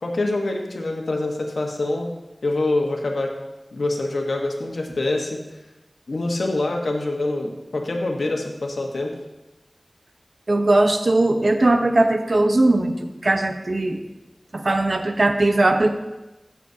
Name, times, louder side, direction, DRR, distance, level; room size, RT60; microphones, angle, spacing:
voice 1, 0.0-2.1 2.4-3.3 3.7-5.4 6.1-9.1, left 2 dB, 85° left, 2 dB, 1.2 m, -25 dB
voice 2, 10.5-12.9 13.2-14.0 14.5-15.9, right 2 dB, 60° right, 6 dB, 0.8 m, -19 dB
14.5 x 7.1 x 2.8 m, 1.0 s
wide cardioid pair, 45°, 0 cm